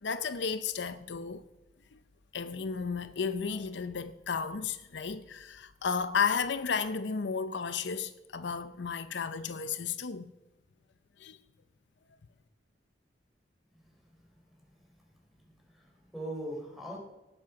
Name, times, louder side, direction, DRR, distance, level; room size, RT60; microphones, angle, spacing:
voice 1, 0.0-1.4 1.9-2.0 2.3-10.3 11.2-11.4, left 6 dB, 70° left, 0.6 m, -33 dB
voice 2, 15.2-17.0, right 1 dB, ahead, 3.6 m, -41 dB
18.5 x 7.7 x 5.8 m
head